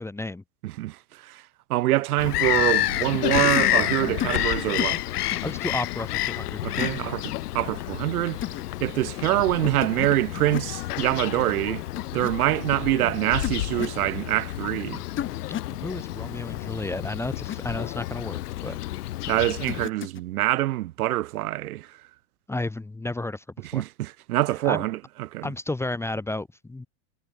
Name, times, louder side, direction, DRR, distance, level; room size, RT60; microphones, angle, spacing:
voice 1, 0.0-0.4 5.4-6.6 15.8-18.8 22.5-23.4 23.7-23.8 24.6-24.8 25.4-26.9, left 2 dB, 5° left, 1.5 m, -32 dB
voice 2, 0.6-1.4 1.7-5.0 6.6-8.4 8.8-11.8 12.1-15.0 19.3-21.9 23.7-25.5, right 16 dB, 70° right, 4.5 m, -25 dB
Bird vocalization bird call bird song, 2.2-19.9, left 15 dB, 85° left, 1.3 m, -29 dB
sound 1, 3.5-3.8 4.2-4.4 4.8-5.0 5.3-5.5 6.8-7.0 8.4-8.6 9.8-10.1 10.3-10.7 12.0-12.3 13.4-14.0 15.2-15.7 17.3-17.6 19.7-20.2, left 10 dB, 25° left, 5.3 m, -32 dB
supercardioid pair, 140°, 45 cm